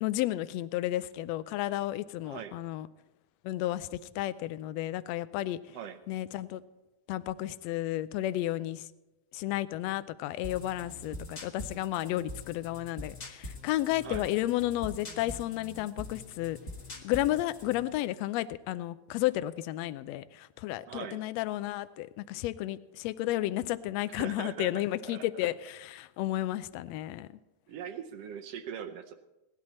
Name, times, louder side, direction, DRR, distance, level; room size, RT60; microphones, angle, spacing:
voice 1, 0.0-2.9 3.4-3.9 4.2-5.6 6.1-6.6 7.1-8.9 9.3-16.6 17.0-27.3, left 15 dB, 80° left, 15 dB, 1.6 m, -32 dB
voice 2, 2.2-2.6 5.7-6.0 14.0-14.3 20.9-21.2 24.1-24.8 25.1-25.3 27.7-29.2, right 8 dB, 70° right, 8 dB, 1.6 m, -41 dB
sound 1, 10.4-17.8, left 1 dB, 30° left, 1.4 m, -44 dB
18.5 x 12.0 x 4.2 m, 1.0 s
omnidirectional pair, 3.4 m